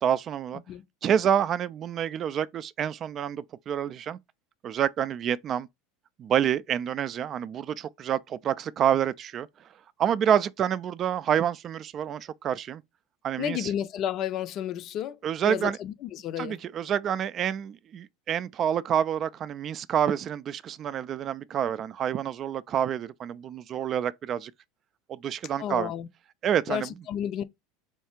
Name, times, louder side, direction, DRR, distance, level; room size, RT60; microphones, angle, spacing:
voice 1, 0.0-0.6 1.0-4.2 4.6-5.7 6.2-9.5 10.0-12.8 13.2-13.7 15.2-15.8 16.4-24.5 25.1-25.9 26.4-26.9, right 9 dB, 40° right, 0.3 m, -28 dB
voice 2, 13.4-15.2 15.4-16.6 25.6-26.1 26.7-27.4, left 10 dB, 50° left, 0.6 m, -31 dB
4.4 x 2.4 x 4.4 m
hypercardioid pair, 90°, 0 cm